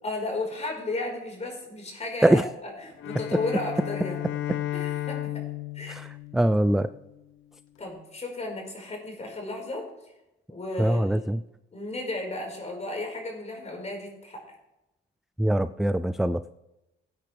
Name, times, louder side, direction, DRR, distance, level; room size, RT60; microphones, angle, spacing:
voice 1, 0.0-4.2 4.7-5.3 5.7-6.0 7.8-9.8 10.5-11.2 11.7-14.4, left 2 dB, 35° left, 1 dB, 4.7 m, -34 dB
Bowed string instrument, 3.0-7.2, left 13 dB, 85° left, 0.7 m, -34 dB
voice 2, 6.3-6.9 10.8-11.4 15.4-16.5, right 1 dB, ahead, 13 dB, 0.3 m, -23 dB
16.5 x 9.4 x 3.4 m, 0.95 s
cardioid pair, 90°, 20 cm